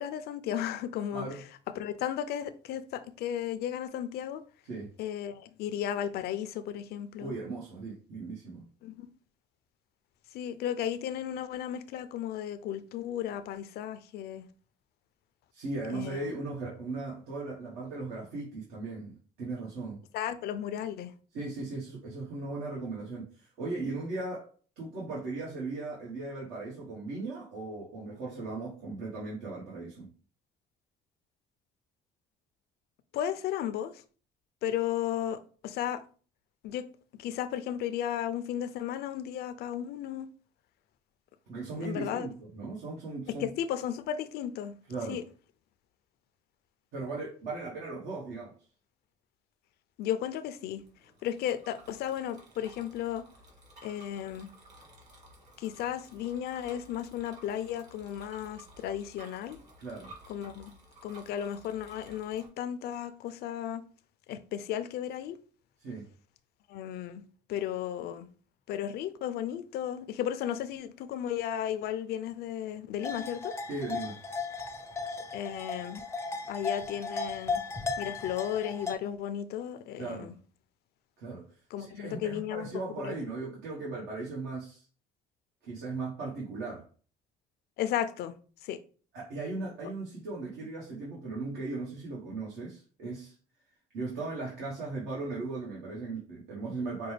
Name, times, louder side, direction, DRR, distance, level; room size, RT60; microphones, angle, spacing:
voice 1, 0.0-1.3 1.8-4.4 5.0-7.3 8.8-9.1 10.3-14.5 15.9-16.2 20.1-21.1 33.1-33.9 34.6-36.0 36.6-36.9 37.2-40.3 41.8-42.3 43.4-44.7 45.1-45.2 50.0-50.8 51.2-53.2 53.8-54.5 55.6-59.6 60.3-60.7 61.0-63.8 64.3-65.4 66.7-67.2 67.5-68.3 68.7-73.5 75.3-76.0 76.5-77.6 78.0-80.3 81.7-82.7 83.0-83.2 87.8-88.3 88.6-88.8, left 10 dB, 70° left, 0.4 m, -34 dB
voice 2, 1.1-1.4 4.7-4.9 7.2-8.6 15.5-20.0 21.3-24.5 24.8-30.1 41.5-43.5 44.9-45.2 46.9-48.5 59.8-60.1 65.8-66.1 73.7-74.2 80.0-80.3 81.2-81.4 81.8-84.8 85.6-86.8 89.1-93.3 93.9-97.1, right 3 dB, 80° right, 1.2 m, -37 dB
Bicycle, 50.7-62.5, right 1 dB, 40° right, 1.7 m, -55 dB
sound 1, 73.0-78.9, left 4 dB, 15° left, 0.4 m, -36 dB
5.1 x 2.2 x 3.2 m
cardioid pair, 110°, 17 cm